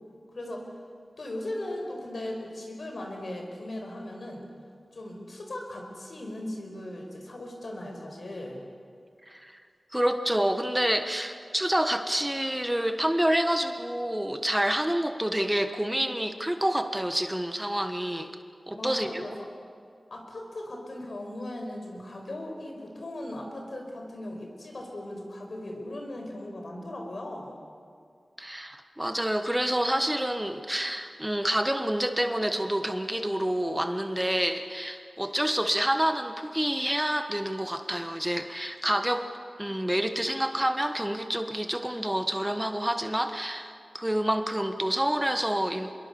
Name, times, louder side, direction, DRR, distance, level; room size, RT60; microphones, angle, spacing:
voice 1, 0.3-0.7 1.2-4.5 4.9-8.6 18.7-19.5 20.1-27.6, left 1 dB, 65° left, 2 dB, 5.0 m, -38 dB
voice 2, 9.9-18.3 18.7-19.3 28.4-39.3 39.6-45.9, right 1 dB, 10° right, 7 dB, 1.3 m, -28 dB
25.5 x 22.0 x 7.1 m, 2.2 s
wide cardioid pair, 55°, 0 cm